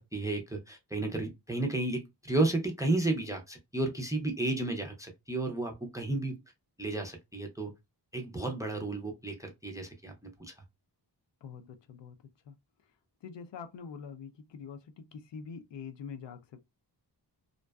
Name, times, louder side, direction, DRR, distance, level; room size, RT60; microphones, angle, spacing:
voice 1, 0.0-6.4 6.8-7.7 8.1-10.5, right 2 dB, 10° right, 0.4 m, -32 dB
voice 2, 11.4-12.2 12.4-12.6 12.8-12.9 13.2-16.7, left 6 dB, 85° left, 0.6 m, -45 dB
2.5 x 2.2 x 2.2 m
wide cardioid pair, 125°, 42 cm